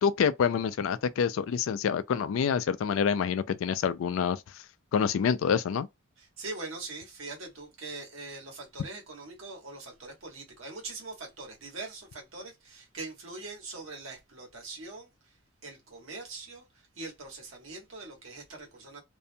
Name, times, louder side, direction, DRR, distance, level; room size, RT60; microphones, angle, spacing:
voice 1, 0.0-4.4 4.9-5.9, left 7 dB, 75° left, 0.3 m, -27 dB
voice 2, 6.2-15.3 15.6-19.0, right 3 dB, 85° right, 1.2 m, -42 dB
2.6 x 2.2 x 2.6 m
head